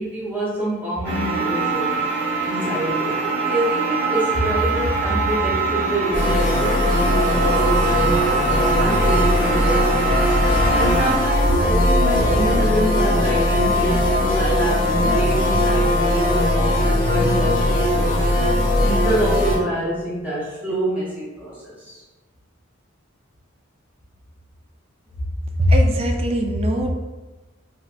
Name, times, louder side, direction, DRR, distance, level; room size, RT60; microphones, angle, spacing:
voice 1, 0.0-2.1 2.4-8.4 8.8-10.0 10.7-18.2 18.5-22.0, right 1 dB, 10° right, -9 dB, 0.7 m, -26 dB
sound 1, 1.0-11.2, right 4 dB, 55° right, 1.0 m, -24 dB
sound 2, 6.1-19.6, left 1 dB, 45° left, 0.8 m, -19 dB
sound 3, 10.1-11.1 11.9-17.9, left 1 dB, 85° left, 0.4 m, -31 dB
voice 2, 25.6-26.9, equal, 30° right, 3 dB, 0.3 m, -19 dB
3.9 x 2.2 x 2.4 m, 1.2 s
head